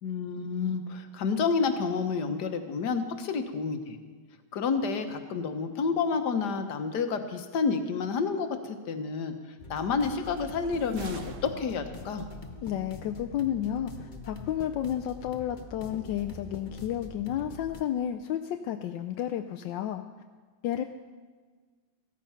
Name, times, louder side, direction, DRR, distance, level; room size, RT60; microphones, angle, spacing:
voice 1, 0.0-4.0 4.5-9.3 9.7-12.3, left 5 dB, 65° left, 7 dB, 1.7 m, -29 dB
sound 1, 9.6-17.8, left 2 dB, 35° left, 0.8 m, -44 dB
sound 2, 10.3-12.1, right 4 dB, 50° right, 1.2 m, -45 dB
voice 2, 12.6-20.0 20.6-20.8, left 10 dB, 85° left, 7 dB, 1.3 m, -31 dB
15.5 x 13.5 x 5.7 m, 1.5 s
omnidirectional pair, 2.0 m